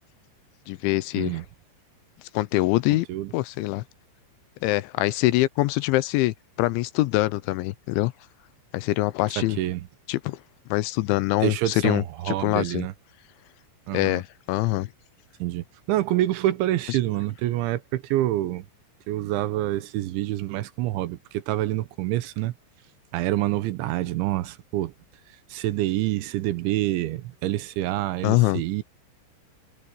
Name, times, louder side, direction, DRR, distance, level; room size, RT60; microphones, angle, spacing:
voice 1, 0.7-1.4 2.3-3.1 3.3-3.8 4.6-8.1 8.7-9.6 10.1-10.4 10.7-12.9 13.9-14.9 28.2-28.6, left 18 dB, 85° left, 3.0 m, -24 dB
voice 2, 9.4-9.8 11.4-12.9 13.9-14.2 15.4-18.7 19.1-22.5 23.1-24.9 25.5-28.8, right 15 dB, 80° right, 3.3 m, -27 dB
omnidirectional pair, 5.5 m